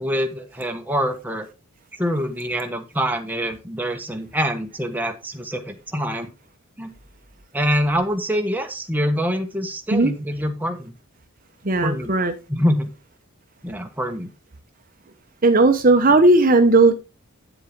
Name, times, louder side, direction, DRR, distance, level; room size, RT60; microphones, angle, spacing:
voice 1, 0.0-1.5 2.0-6.3 6.8-6.9 7.5-10.9 11.8-12.1 12.5-12.9 13.6-14.3, equal, 10° right, 1.1 m, -25 dB
voice 2, 11.6-12.3 15.4-16.9, right 2 dB, 40° right, 0.9 m, -15 dB
9.0 x 7.5 x 3.7 m
head